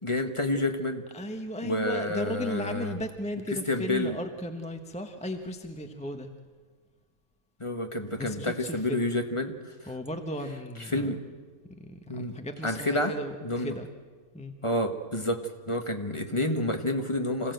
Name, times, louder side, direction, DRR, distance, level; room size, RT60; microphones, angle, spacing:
voice 1, 0.0-1.0 1.6-3.0 3.7-4.2 7.6-9.6 9.8-9.9 10.8-11.2 12.1-13.8 14.6-17.5, left 1 dB, 20° left, 5 dB, 1.3 m, -29 dB
voice 2, 1.1-6.3 8.1-9.1 9.9-11.1 11.8-13.9 14.3-14.5, left 1 dB, 5° left, 6 dB, 0.9 m, -36 dB
26.5 x 16.0 x 7.9 m, 1.5 s
omnidirectional pair, 1.5 m